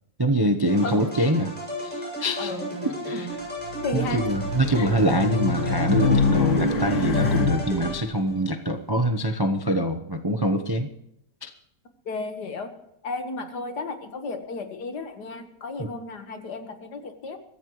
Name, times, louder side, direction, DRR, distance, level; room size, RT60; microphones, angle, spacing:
voice 1, 0.2-1.5 1.8-2.5 2.8-3.3 3.9-10.9 11.4-11.5 15.8-15.9, right 1 dB, 20° right, 5 dB, 0.6 m, -24 dB
sound 1, 0.7-8.4, right 1 dB, 5° left, 7.3 m, -34 dB
voice 2, 2.4-2.7 3.8-4.2 4.8-4.9 12.1-12.7 13.0-17.4, left 3 dB, 65° left, 7 dB, 2.1 m, -33 dB
Race car auto racing, 3.6-8.0, left 4 dB, 85° left, 2.4 m, -25 dB
23.5 x 15.0 x 3.1 m, 0.81 s
omnidirectional pair, 2.0 m